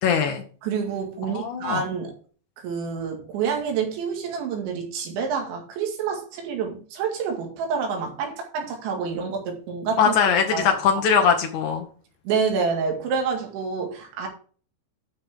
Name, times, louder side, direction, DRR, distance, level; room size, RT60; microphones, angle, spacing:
voice 1, 0.0-0.4 1.3-1.8 10.0-11.8, left 7 dB, 90° left, 1.7 m, -21 dB
voice 2, 0.6-2.1 2.6-10.1 10.5-10.7 12.3-14.3, right 6 dB, 80° right, 4.4 m, -28 dB
12.0 x 6.1 x 3.5 m
omnidirectional pair, 5.3 m